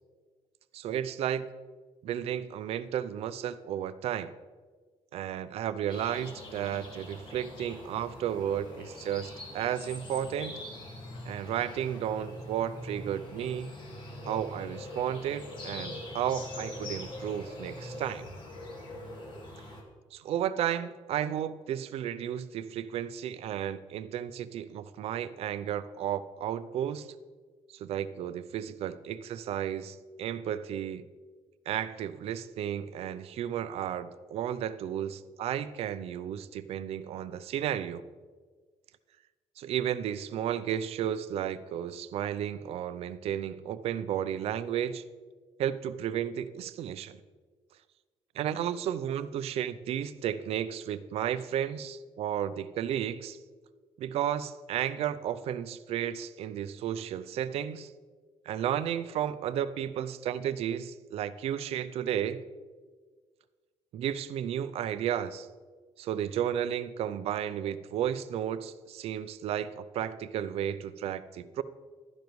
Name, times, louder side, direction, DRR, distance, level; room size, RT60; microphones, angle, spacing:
voice 1, 0.7-1.5 2.0-4.3 5.1-10.6 11.3-13.7 14.3-18.3 20.1-27.1 27.7-31.0 31.7-38.0 39.6-45.0 45.6-47.2 48.4-53.4 54.0-57.9 58.5-62.4 63.9-65.5 66.0-71.6, right 10 dB, 60° right, 14 dB, 0.5 m, -33 dB
sound 1, 5.9-19.8, left 1 dB, 45° left, 1.8 m, -43 dB
12.0 x 10.5 x 3.1 m, 1.5 s
cardioid pair, 155°, 12 cm